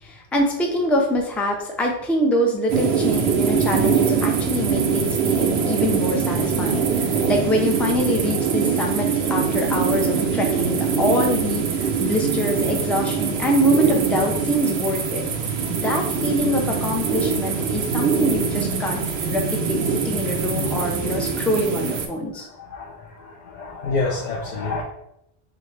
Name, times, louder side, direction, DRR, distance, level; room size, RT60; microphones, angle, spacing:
voice 1, 0.0-15.2 15.7-19.8 20.0-22.5, equal, ahead, 1 dB, 0.3 m, -24 dB
sound 1, 2.7-22.1, right 6 dB, 85° right, 0.8 m, -23 dB
voice 2, 22.4-24.8, left 3 dB, 55° left, -1 dB, 0.6 m, -28 dB
6.0 x 2.1 x 3.2 m, 0.82 s
omnidirectional pair, 1.0 m